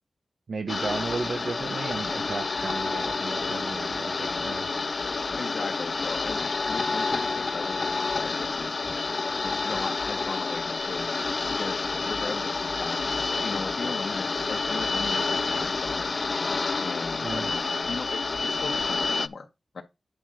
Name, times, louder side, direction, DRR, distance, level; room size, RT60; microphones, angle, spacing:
voice 1, 0.5-4.7 17.2-17.5, right 4 dB, 75° right, 1.4 m, -34 dB
sound 1, 0.7-19.3, left 4 dB, 50° left, 0.4 m, -29 dB
voice 2, 5.4-8.8 9.4-11.1 11.5-13.0 13.4-16.3 16.8-17.6 17.9-19.5 19.7-19.8, left 4 dB, 70° left, 1.5 m, -38 dB
9.5 x 5.4 x 3.9 m
wide cardioid pair, 100°, 0 cm